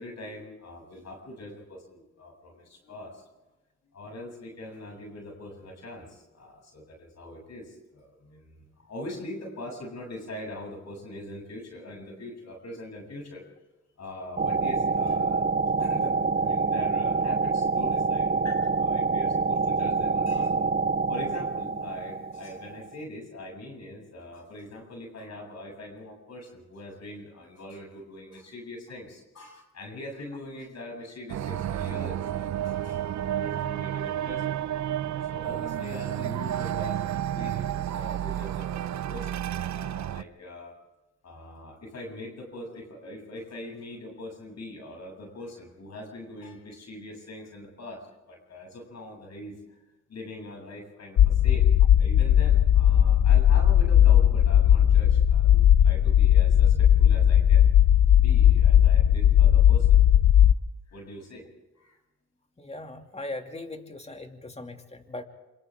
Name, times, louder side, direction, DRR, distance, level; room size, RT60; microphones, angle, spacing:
voice 1, 0.0-3.2 3.9-13.4 14.0-15.5 15.8-20.5 21.1-33.0 33.3-34.6 35.3-40.7 41.2-48.0 48.3-49.5 50.1-51.7 52.0-57.7 58.1-60.0 60.9-61.4 61.8-62.0, left 1 dB, 65° left, 1 dB, 7.8 m, -42 dB
sound 1, 14.4-23.0, right 4 dB, 30° right, 0.7 m, -26 dB
sound 2, 31.3-40.2, right 11 dB, 70° right, 0.7 m, -31 dB
sound 3, 51.2-60.5, left 10 dB, 85° left, 0.8 m, -18 dB
voice 2, 62.6-65.2, left 2 dB, 20° left, 4 dB, 2.6 m, -39 dB
27.0 x 26.5 x 3.7 m, 1.1 s
cardioid pair, 75°, 29 cm